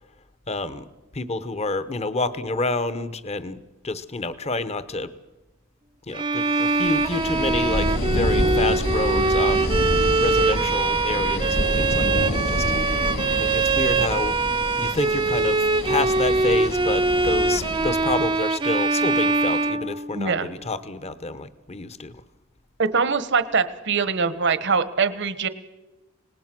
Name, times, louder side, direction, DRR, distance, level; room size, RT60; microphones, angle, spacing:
voice 1, 0.5-5.1 6.1-12.7 13.4-14.4 14.8-22.1, left 3 dB, 30° left, 14 dB, 0.9 m, -29 dB
Bowed string instrument, 6.1-20.4, right 3 dB, 25° right, 0.6 m, -23 dB
sound 1, 6.6-18.4, left 1 dB, 65° left, 2.5 m, -28 dB
voice 2, 20.1-20.5 22.8-25.5, right 5 dB, 60° right, 13 dB, 1.2 m, -23 dB
25.5 x 19.5 x 6.1 m, 1.1 s
head